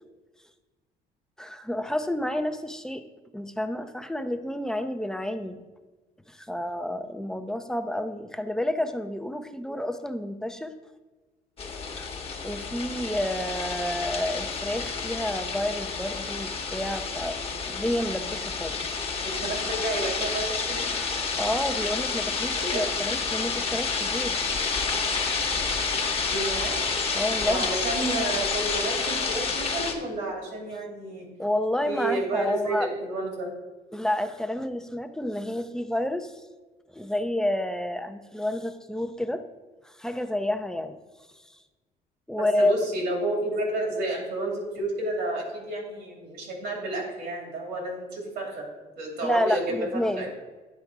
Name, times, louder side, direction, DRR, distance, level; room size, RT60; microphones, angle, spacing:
voice 1, 1.4-3.0 3.3-5.6 6.3-10.8 11.9-12.1 12.4-18.8 20.9-21.1 21.4-24.4 27.1-27.7 31.4-32.9 33.9-36.4 36.9-39.4 39.8-41.0 42.3-42.7 49.2-50.3, left 1 dB, 5° left, 8 dB, 0.4 m, -29 dB
sound 1, 11.6-29.9, left 4 dB, 35° left, 1.0 m, -29 dB
voice 2, 19.2-20.9 22.6-22.9 26.2-26.8 27.4-31.3 31.8-33.5 42.4-48.6 49.0-49.8 50.2-50.3, right 2 dB, 80° right, 0 dB, 2.4 m, -31 dB
10.0 x 3.4 x 4.6 m, 1.2 s
cardioid pair, 110°, 17 cm